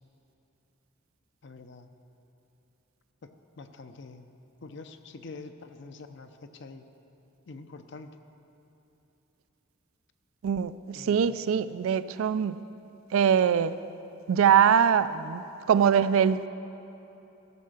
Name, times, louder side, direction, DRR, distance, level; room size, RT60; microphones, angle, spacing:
voice 1, 1.4-1.9 3.2-4.3 4.6-6.9 7.5-8.1 10.9-11.4, left 3 dB, 60° left, 8 dB, 0.5 m, -46 dB
voice 2, 10.4-12.6 13.1-13.7 14.3-16.5, right 8 dB, 85° right, 15 dB, 0.3 m, -23 dB
14.0 x 5.6 x 6.5 m, 3.0 s
head